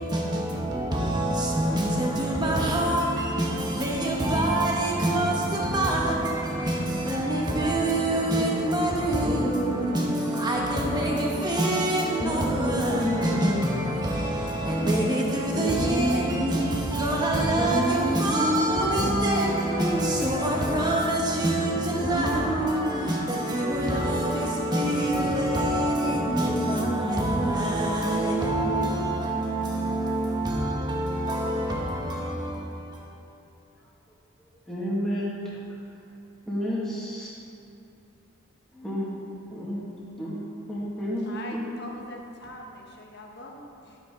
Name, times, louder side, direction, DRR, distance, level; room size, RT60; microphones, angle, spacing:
voice 1, 0.0-33.2, right 1 dB, 20° right, -2 dB, 1.3 m, -26 dB
voice 2, 9.2-10.1 12.2-13.7 15.5-16.8 17.6-20.2 22.0-23.1 26.3-27.6 28.0-28.5 34.4-35.6 36.5-37.3 38.7-39.1 39.5-39.8 40.2-40.4 40.7-41.6, equal, ahead, -8 dB, 2.2 m, -29 dB
voice 3, 41.2-44.0, left 1 dB, 50° left, 0 dB, 1.3 m, -42 dB
12.0 x 8.5 x 3.9 m, 2.7 s
head